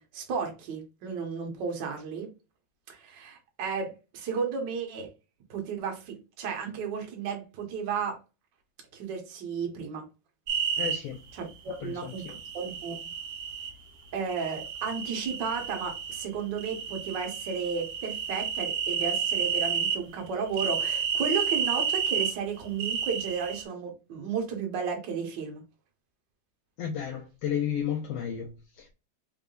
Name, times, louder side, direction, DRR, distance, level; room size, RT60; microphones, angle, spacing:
voice 1, 0.0-2.3 2.9-5.1 5.5-8.2 8.9-10.1 11.3-12.3 12.5-13.1 14.1-25.6, right 6 dB, 55° right, 1.3 m, -33 dB
sound 1, 10.5-11.0 12.1-13.7 14.3-16.2 16.6-20.0 20.5-22.3 22.8-23.6, right 7 dB, 70° right, 1.3 m, -31 dB
voice 2, 10.8-11.2 11.8-12.4 26.8-28.9, left 8 dB, 75° left, 1.5 m, -33 dB
4.6 x 3.5 x 2.4 m
omnidirectional pair, 3.4 m